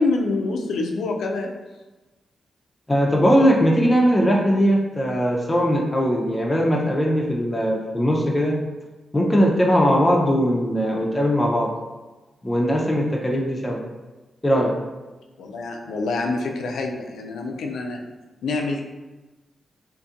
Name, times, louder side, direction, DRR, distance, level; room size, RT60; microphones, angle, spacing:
voice 1, 0.0-1.5 15.4-18.0 18.4-18.8, left 3 dB, 80° left, 2 dB, 0.3 m, -26 dB
voice 2, 2.9-8.6 9.1-11.7 12.4-13.8 14.4-14.7, equal, 20° left, -2 dB, 0.5 m, -20 dB
2.5 x 2.5 x 2.4 m, 1.2 s
supercardioid pair, 45°, 0 cm